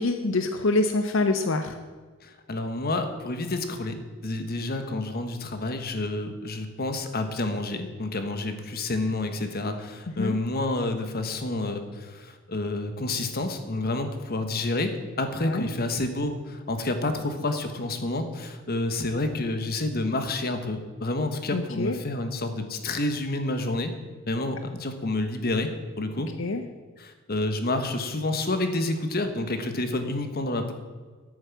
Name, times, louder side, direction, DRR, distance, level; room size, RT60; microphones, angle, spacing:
voice 1, 0.0-1.7 10.2-10.3 15.4-15.6 21.5-22.0 26.4-26.6, left 2 dB, 65° left, 7 dB, 0.7 m, -25 dB
voice 2, 2.2-23.9 24.3-25.7 26.0-26.3 27.0-30.7, left 2 dB, 50° left, 7 dB, 1.3 m, -29 dB
10.5 x 8.8 x 7.2 m, 1.4 s
head